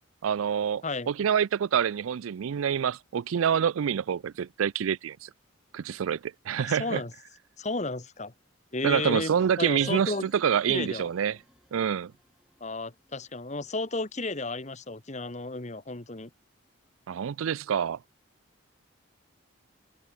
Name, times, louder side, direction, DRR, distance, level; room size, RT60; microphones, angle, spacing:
voice 1, 0.2-5.3 5.7-7.0 8.8-11.4 11.7-12.1 17.1-18.0, right 8 dB, 80° right, 0.4 m, -27 dB
voice 2, 6.6-7.1 7.6-8.3 8.7-9.3 9.6-10.3 10.7-11.1 12.6-16.3, left 3 dB, 35° left, 1.5 m, -33 dB
sound 1, 9.8-13.3, equal, 5° right, 2.8 m, -52 dB
head